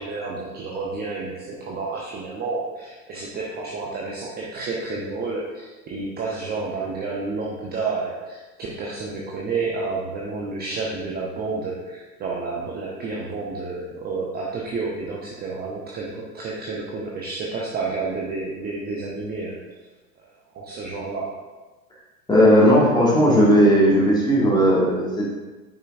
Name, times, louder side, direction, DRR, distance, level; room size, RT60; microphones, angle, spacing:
voice 1, 0.0-19.6 20.5-21.4, right 3 dB, 20° right, -2 dB, 0.8 m, -30 dB
voice 2, 22.3-25.3, equal, 10° left, -5 dB, 2.0 m, -16 dB
9.3 x 5.4 x 2.6 m, 1.2 s
figure-of-eight pair, 95°, 48 cm